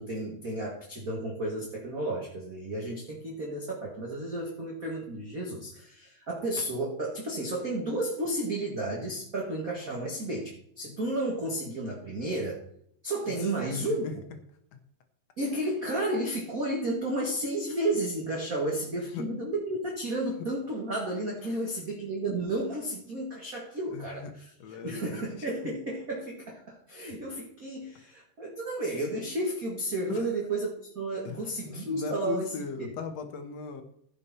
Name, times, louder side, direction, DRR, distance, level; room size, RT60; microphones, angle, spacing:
voice 1, 0.0-12.6 13.0-14.2 15.4-24.3 24.8-32.5 32.8-32.9, right 1 dB, 30° right, -2 dB, 1.8 m, -32 dB
voice 2, 13.8-14.1 19.1-19.3 21.4-21.7 23.9-24.3 24.6-25.8 30.1-30.3 31.2-31.4 31.8-33.8, left 6 dB, 65° left, 7 dB, 1.9 m, -38 dB
15.5 x 6.9 x 4.3 m, 0.69 s
omnidirectional pair, 4.0 m